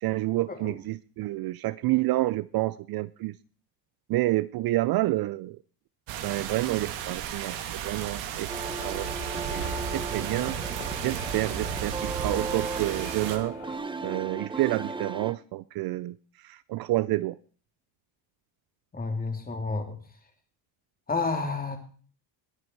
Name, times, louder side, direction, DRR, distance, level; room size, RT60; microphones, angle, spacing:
voice 1, 0.0-3.4 4.1-5.6 6.2-10.6 11.0-13.6 14.0-17.4, right 18 dB, 50° right, 18 dB, 0.5 m, -29 dB
sound 1, 6.1-13.4, right 8 dB, 80° right, 2.6 m, -34 dB
sound 2, 8.5-15.3, right 3 dB, 10° right, 0.8 m, -36 dB
sound 3, 8.7-13.8, left 7 dB, 80° left, 5.0 m, -46 dB
voice 2, 18.9-20.0 21.1-21.8, left 3 dB, 20° left, 5 dB, 3.2 m, -30 dB
20.5 x 9.7 x 4.6 m, 0.42 s
cardioid pair, 120°, 46 cm